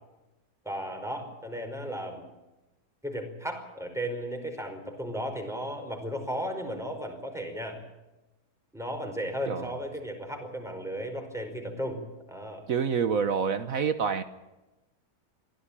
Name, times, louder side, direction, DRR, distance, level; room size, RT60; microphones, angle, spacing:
voice 1, 0.6-2.2 3.0-7.8 8.7-12.0 12.3-12.6, equal, ahead, 3 dB, 5.1 m, -35 dB
voice 2, 9.5-9.8 12.7-14.2, right 6 dB, 65° right, 11 dB, 1.5 m, -27 dB
23.5 x 16.0 x 8.8 m, 1.0 s
omnidirectional pair, 1.6 m